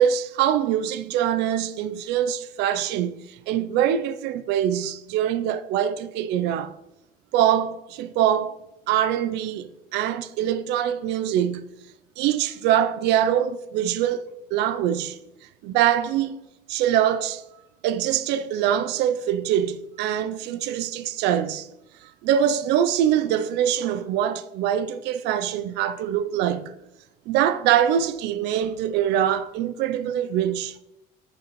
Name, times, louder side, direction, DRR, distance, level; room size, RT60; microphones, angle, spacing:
voice 1, 0.0-6.7 7.3-8.6 8.9-11.7 12.2-15.2 15.6-16.4 16.7-17.4 17.8-21.7 22.0-26.7 27.3-30.8, right 10 dB, 90° right, 0.5 m, -23 dB
9.0 x 7.4 x 3.1 m
cardioid pair, 110°, 17 cm